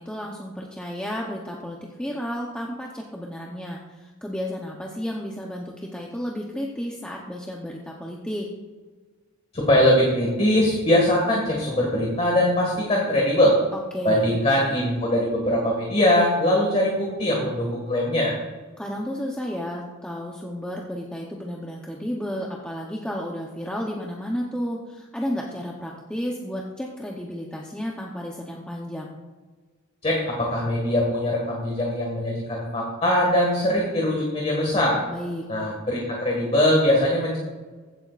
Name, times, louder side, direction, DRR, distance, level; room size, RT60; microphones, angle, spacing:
voice 1, 0.0-8.5 13.9-14.3 18.8-29.2 35.1-35.5, equal, 5° left, -2 dB, 0.8 m, -32 dB
voice 2, 9.5-13.6 14.0-18.4 30.0-35.0 35.5-37.4, left 1 dB, 30° left, -2 dB, 1.8 m, -21 dB
15.0 x 8.7 x 2.5 m, 1.4 s
head